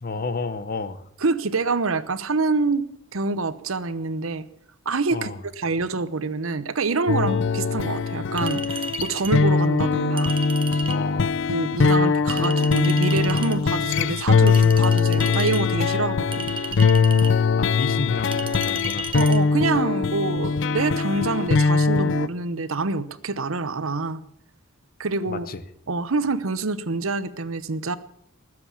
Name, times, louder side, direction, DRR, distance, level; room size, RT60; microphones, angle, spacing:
voice 1, 0.0-1.0 5.1-5.4 10.9-11.4 17.6-19.1 25.3-25.6, left 3 dB, 45° left, 13 dB, 0.9 m, -31 dB
voice 2, 1.2-2.9 3.1-4.5 4.8-5.3 5.6-10.3 11.5-16.5 19.1-24.2 25.0-25.5 25.9-28.0, right 3 dB, 75° right, 14 dB, 0.9 m, -26 dB
sound 1, 7.1-22.3, left 5 dB, 60° left, 0.5 m, -21 dB
Chink clink, 8.4-9.4 10.2-11.0 12.3-13.6 14.5-15.6 16.3-17.4 18.3-19.4, right 4 dB, 25° right, 1.0 m, -34 dB
20.0 x 7.8 x 7.1 m, 0.71 s
head